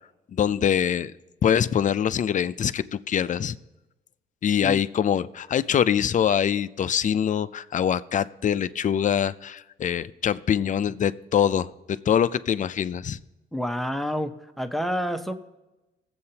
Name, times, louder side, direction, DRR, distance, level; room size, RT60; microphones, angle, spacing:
voice 1, 0.3-1.1 1.4-3.6 4.4-13.2, left 8 dB, 40° left, 13 dB, 0.5 m, -24 dB
voice 2, 13.5-15.3, equal, ahead, 8 dB, 0.8 m, -28 dB
19.0 x 7.8 x 2.8 m, 1.0 s
cardioid pair, 90°, 20 cm